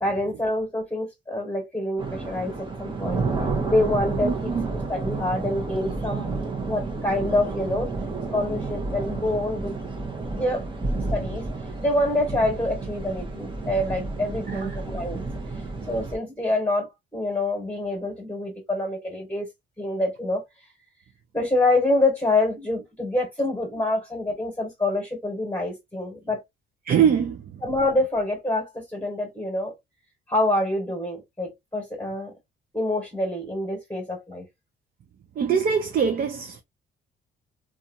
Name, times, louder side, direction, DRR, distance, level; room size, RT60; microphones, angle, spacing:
voice 1, 0.0-3.2 3.7-4.5 4.9-7.9 8.3-9.8 10.3-10.7 11.1-11.4 11.8-15.2 15.9-19.5 19.8-20.4 21.3-26.4 27.6-29.7 30.3-32.3 32.7-34.5, left 2 dB, 10° left, 1.5 m, -26 dB
sound 1, 2.0-16.2, right 3 dB, 25° right, 0.9 m, -31 dB
voice 2, 4.2-4.7 14.5-14.8 26.8-27.6 35.3-36.6, right 7 dB, 50° right, 0.6 m, -23 dB
2.7 x 2.4 x 2.6 m
cardioid pair, 90°, 20 cm